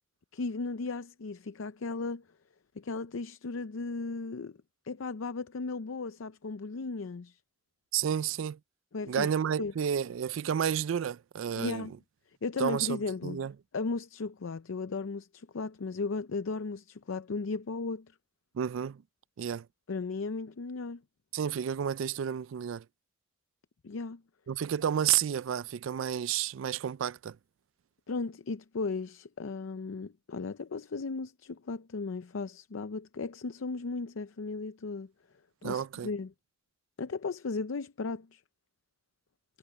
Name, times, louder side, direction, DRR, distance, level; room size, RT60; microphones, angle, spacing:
voice 1, 0.3-2.2 2.8-4.6 4.8-7.4 8.9-9.3 9.6-9.7 11.6-11.9 12.4-13.4 13.7-18.1 19.9-21.0 23.8-24.2 28.1-35.1 35.6-36.3 37.0-38.4, left 4 dB, 85° left, 0.6 m, -36 dB
voice 2, 7.9-8.6 9.1-11.9 12.6-13.5 18.5-19.0 19.4-19.7 21.3-22.9 24.5-27.4 35.6-36.1, right 9 dB, 80° right, 0.4 m, -31 dB
head